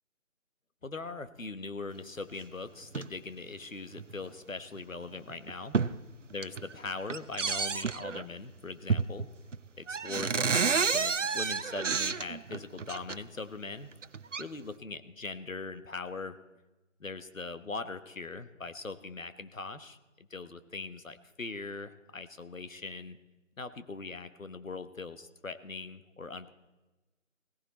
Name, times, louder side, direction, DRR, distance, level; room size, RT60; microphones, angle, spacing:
voice 1, 0.8-5.7 6.3-9.3 9.8-13.9 14.4-16.4 17.0-23.2 23.6-26.5, left 3 dB, 80° left, 11 dB, 1.3 m, -41 dB
sound 1, 2.8-3.1 4.0-4.1 4.8-4.9 5.3-6.0 6.3-6.7 7.1-8.3 8.9-9.3 9.5-9.6 9.9-13.2 13.9-14.4, right 5 dB, 65° right, 0.7 m, -30 dB
17.0 x 15.5 x 4.2 m, 1.1 s
figure-of-eight pair, 155°, 39 cm